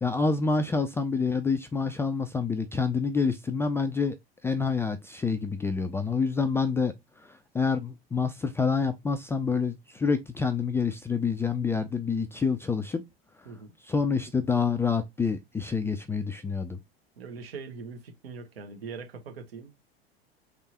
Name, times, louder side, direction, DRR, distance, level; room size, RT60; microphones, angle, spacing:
voice 1, 0.0-4.2 4.4-6.9 7.2-13.0 13.9-16.8, left 5 dB, 10° left, 0.3 m, -27 dB
voice 2, 17.2-19.8, right 5 dB, 70° right, 1.2 m, -42 dB
3.6 x 3.1 x 2.8 m
figure-of-eight pair, 80°, 31 cm